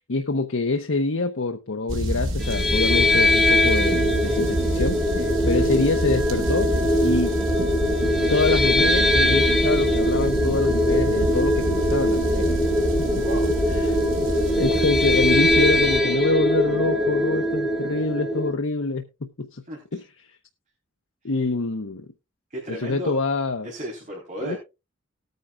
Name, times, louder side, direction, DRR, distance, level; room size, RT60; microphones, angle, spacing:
voice 1, 0.1-6.7 7.0-7.4 8.3-12.5 13.7-14.0 14.6-19.6 19.9-20.0 21.2-22.1 22.7-23.7 24.4-24.6, left 3 dB, 85° left, 0.9 m, -26 dB
sound 1, 1.9-16.0, equal, 90° right, 2.1 m, -27 dB
sound 2, 2.4-18.5, left 1 dB, ahead, 1.8 m, -22 dB
voice 2, 13.2-13.6 19.7-20.0 22.5-23.2 23.6-24.6, right 1 dB, 40° right, 3.8 m, -34 dB
19.0 x 9.3 x 2.4 m
head